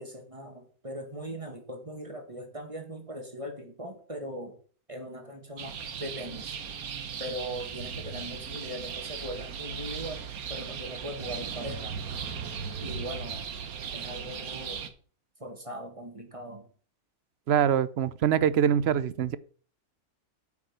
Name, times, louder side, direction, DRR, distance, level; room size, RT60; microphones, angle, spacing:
voice 1, 0.0-4.6 4.9-6.5 7.2-11.9 12.8-13.4 13.9-14.8 15.4-16.7, equal, 20° right, 1.9 m, -40 dB
sound 1, 5.6-14.9, right 7 dB, 75° right, 1.5 m, -37 dB
voice 2, 17.5-19.4, right 9 dB, 60° right, 0.7 m, -24 dB
9.1 x 6.0 x 7.3 m
omnidirectional pair, 1.5 m